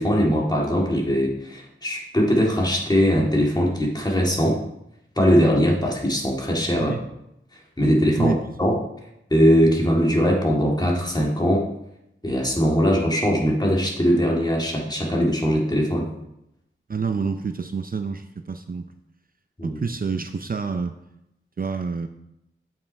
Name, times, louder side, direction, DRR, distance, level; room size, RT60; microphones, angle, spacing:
voice 1, 0.0-4.6 5.2-6.9 7.8-8.3 8.6-8.8 9.3-11.7 12.2-16.1 19.6-19.8, equal, 20° left, -2 dB, 2.0 m, -20 dB
voice 2, 16.9-18.9 19.6-21.0 21.6-22.1, right 5 dB, 45° right, 7 dB, 0.5 m, -28 dB
7.4 x 5.6 x 4.5 m, 0.83 s
wide cardioid pair, 65°, 21 cm